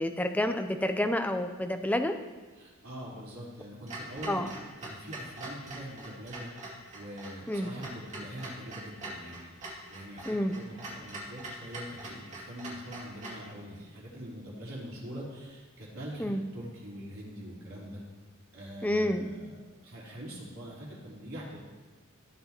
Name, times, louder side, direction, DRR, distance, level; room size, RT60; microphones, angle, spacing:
voice 1, 0.0-2.1 4.3-4.5 7.5-7.7 10.3-10.5 16.2-16.4 18.8-19.3, left 1 dB, 5° left, 6 dB, 0.4 m, -29 dB
voice 2, 2.5-18.0 18.5-21.6, equal, 75° right, -6 dB, 3.7 m, -43 dB
Clock, 3.9-13.5, right 1 dB, 35° right, 2.4 m, -43 dB
16.0 x 8.0 x 3.0 m, 1.3 s
head